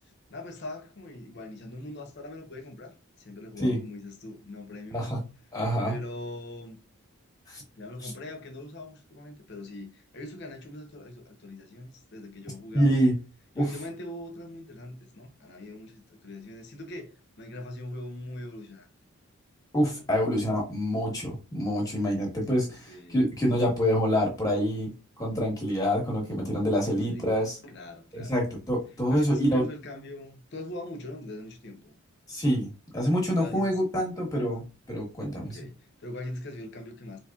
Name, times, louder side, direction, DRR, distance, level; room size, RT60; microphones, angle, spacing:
voice 1, 0.3-5.1 5.9-6.8 7.8-13.0 13.5-18.9 19.9-20.0 22.4-22.6 22.9-23.2 26.9-28.4 29.1-31.9 33.4-33.7 35.3-37.2, left 1 dB, 50° left, 0.8 m, -42 dB
voice 2, 5.5-6.0 7.5-7.6 8.0-8.1 12.7-13.1 13.6-13.7 19.7-24.9 25.2-27.6 28.1-29.6 32.3-35.6, equal, 15° left, 1.1 m, -26 dB
4.3 x 3.2 x 2.3 m
head